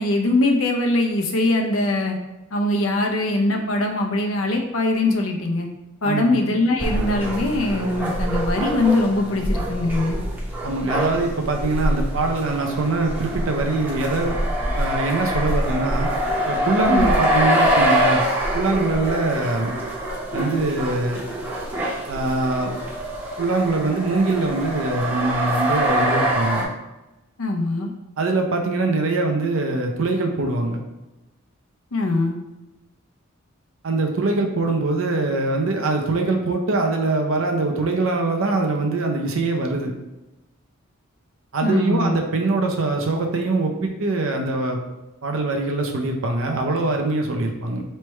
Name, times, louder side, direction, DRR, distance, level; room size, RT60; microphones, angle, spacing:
voice 1, 0.0-2.2 2.5-5.7 6.0-10.2 16.9-17.1 27.4-27.9 31.9-32.4 41.6-42.2, left 2 dB, 85° left, 3 dB, 0.7 m, -22 dB
voice 2, 6.0-6.4 10.6-14.4 14.8-16.1 16.5-18.2 18.5-19.7 20.3-21.2 22.1-22.7 23.4-26.7 28.2-30.8 33.8-39.9 41.5-44.8 45.2-47.8, right 2 dB, 75° right, 3 dB, 0.7 m, -23 dB
sound 1, 6.8-26.6, right 1 dB, 10° right, 0.7 m, -24 dB
3.3 x 3.2 x 4.5 m, 1.0 s
head